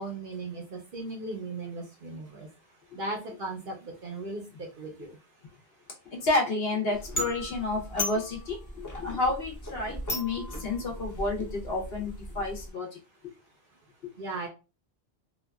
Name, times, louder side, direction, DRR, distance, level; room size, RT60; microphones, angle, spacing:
voice 1, 0.0-2.5 2.9-5.2 14.2-14.5, right 2 dB, 60° right, 0.7 m, -37 dB
voice 2, 6.2-8.6 8.9-12.9, left 2 dB, 60° left, 1.0 m, -30 dB
sound 1, 6.9-12.7, left 1 dB, 30° left, 0.3 m, -37 dB
2.8 x 2.3 x 2.2 m
omnidirectional pair, 1.2 m